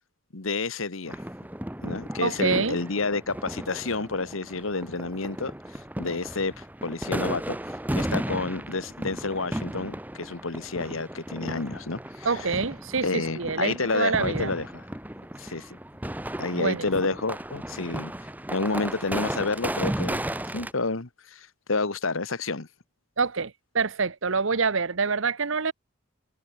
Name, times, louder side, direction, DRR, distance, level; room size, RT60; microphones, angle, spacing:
voice 1, 0.3-1.2 1.8-5.5 6.0-7.6 7.9-12.5 13.0-14.8 15.4-15.8 16.4-18.1 18.5-20.2 20.5-22.7, left 3 dB, 70° left, 1.4 m, -30 dB
sound 1, 1.1-20.7, right 1 dB, 10° right, 1.3 m, -35 dB
voice 2, 2.2-2.8 12.2-14.5 16.5-16.9 23.2-25.7, right 4 dB, 65° right, 1.0 m, -26 dB
head